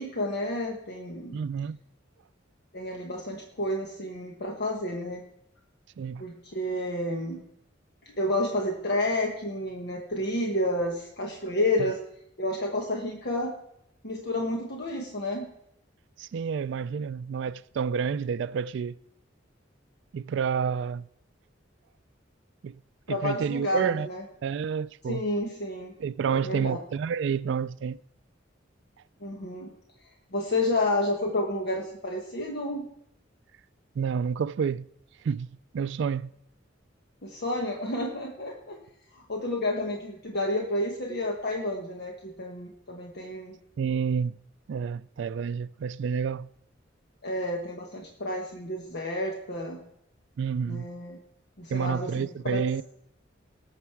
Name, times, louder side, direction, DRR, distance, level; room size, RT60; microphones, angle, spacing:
voice 1, 0.0-1.4 2.7-5.2 6.2-7.4 8.0-12.0 12.4-13.5 14.0-15.5 23.1-24.2 25.1-25.9 26.3-26.8 29.2-29.7 30.0-32.9 37.2-38.8 39.1-43.6 47.2-49.8 50.7-51.2 51.6-52.8, left 1 dB, 60° left, 1.3 m, -30 dB
voice 2, 1.3-1.8 6.0-6.2 16.2-19.0 20.1-21.1 22.6-22.8 23.1-24.1 24.4-25.2 26.0-28.0 34.0-34.9 35.2-35.5 35.7-36.3 43.8-44.4 44.7-46.5 50.4-50.9 51.7-52.8, right 6 dB, 65° right, 0.3 m, -29 dB
18.5 x 7.3 x 4.7 m
head